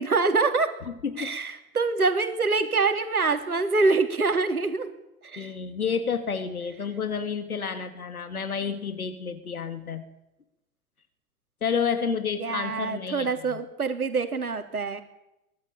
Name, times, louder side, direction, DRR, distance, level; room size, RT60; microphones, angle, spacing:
voice 1, 0.0-0.7 1.2-4.9 5.2-5.5 12.4-15.0, right 4 dB, 80° right, 8 dB, 3.3 m, -25 dB
voice 2, 0.9-1.4 5.4-10.1 11.6-13.6, left 6 dB, 80° left, 10 dB, 2.4 m, -30 dB
24.5 x 18.5 x 8.7 m, 0.89 s
figure-of-eight pair, 90°, 43 cm